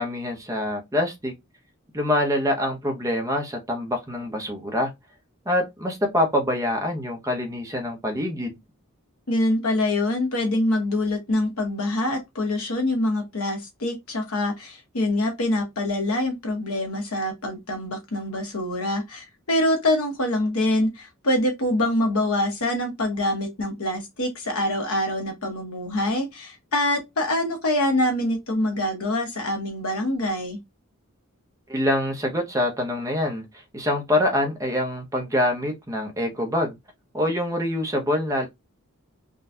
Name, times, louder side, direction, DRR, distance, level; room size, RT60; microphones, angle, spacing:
voice 1, 0.0-1.3 1.9-4.9 5.5-8.6 31.7-33.4 33.7-36.8 37.1-38.5, left 1 dB, 15° right, 0.8 m, -25 dB
voice 2, 9.3-30.6, left 1 dB, 85° left, 1.1 m, -25 dB
3.8 x 2.3 x 2.6 m
head